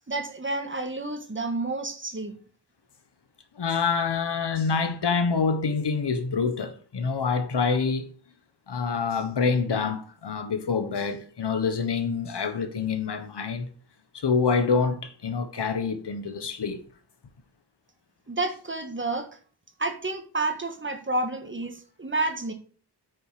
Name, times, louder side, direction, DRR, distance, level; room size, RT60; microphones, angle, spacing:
voice 1, 0.1-2.3 18.3-19.3 19.8-22.5, right 2 dB, 30° right, 1.5 m, -30 dB
voice 2, 3.6-8.1 8.7-13.7 14.1-16.8, left 5 dB, 75° left, 1.4 m, -26 dB
9.3 x 6.3 x 5.0 m
wide cardioid pair, 110°, 41 cm